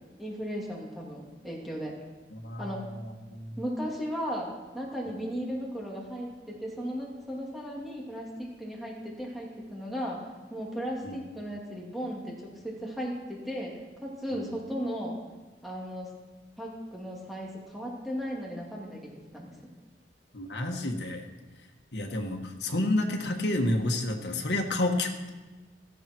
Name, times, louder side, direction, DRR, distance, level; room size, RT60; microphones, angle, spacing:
voice 1, 0.2-2.0 2.6-2.9 3.6-10.2 10.5-13.7 14.0-15.2 15.6-16.1 16.6-19.5, equal, ahead, -4 dB, 2.7 m, -36 dB
voice 2, 2.3-2.8 3.3-3.6 5.1-5.2 11.0-11.2 14.3-14.5 20.3-21.3 21.9-25.3, left 1 dB, 70° left, 2 dB, 1.6 m, -30 dB
17.0 x 14.0 x 4.6 m, 1.2 s
head